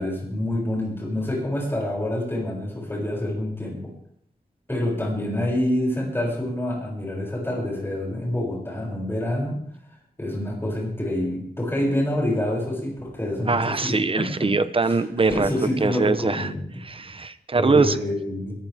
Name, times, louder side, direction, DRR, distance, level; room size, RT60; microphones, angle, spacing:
voice 1, 0.0-3.9 4.7-9.6 10.2-14.5 14.8-15.0 15.3-16.8 17.6-18.5, left 1 dB, 15° left, -2 dB, 6.9 m, -27 dB
voice 2, 13.5-15.5 15.8-16.5 16.8-17.9, right 3 dB, 35° right, 13 dB, 0.9 m, -22 dB
22.5 x 15.0 x 3.6 m, 0.68 s
wide cardioid pair, 120°, 16 cm